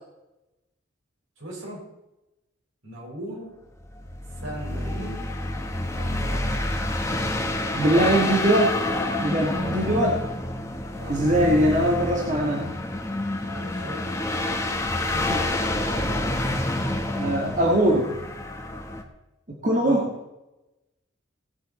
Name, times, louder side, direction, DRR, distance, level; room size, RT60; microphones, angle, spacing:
voice 1, 1.4-1.9 2.8-3.6 4.3-5.2 5.9-6.5 9.5-10.0 11.0-11.3 13.4-14.1 19.8-20.1, right 1 dB, 75° right, -2 dB, 5.2 m, -38 dB
sound 1, 3.8-19.0, left 1 dB, 15° left, 1.1 m, -28 dB
voice 2, 7.7-8.8 9.2-10.2 11.1-12.8 15.0-15.5 17.1-18.1 19.5-20.1, right 1 dB, 35° right, -1 dB, 1.6 m, -22 dB
18.0 x 8.6 x 4.2 m, 0.97 s
head